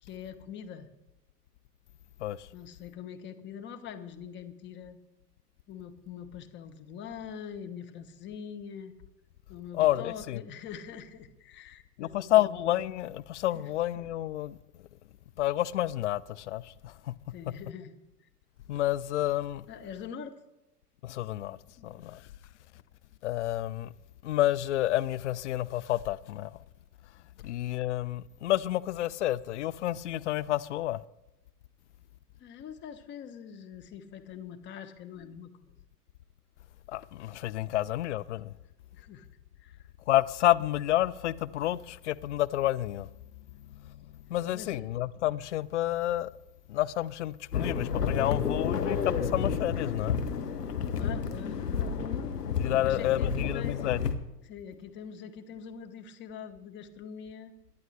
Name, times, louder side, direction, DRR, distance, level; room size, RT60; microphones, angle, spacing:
voice 1, 0.0-0.9 2.5-5.0 5.7-8.9 9.5-12.5 13.5-13.7 17.3-18.0 19.7-20.4 21.8-22.1 32.4-35.7 38.9-39.3 39.6-39.8 44.5-44.9 50.9-51.6 52.0-52.2 52.7-53.8 54.4-57.5, left 8 dB, 25° left, 1.2 m, -44 dB
voice 2, 9.7-10.4 12.0-14.6 15.4-17.1 17.5-17.6 18.7-19.7 21.0-21.6 21.8-22.3 23.2-23.9 24.2-26.5 27.4-31.0 36.9-38.5 40.1-43.1 43.7-46.3 46.7-50.2 52.5-54.1, left 14 dB, 50° left, 0.5 m, -29 dB
sound 1, 47.5-54.1, left 6 dB, 75° left, 1.3 m, -31 dB
23.0 x 10.5 x 3.3 m
figure-of-eight pair, 105°, 48 cm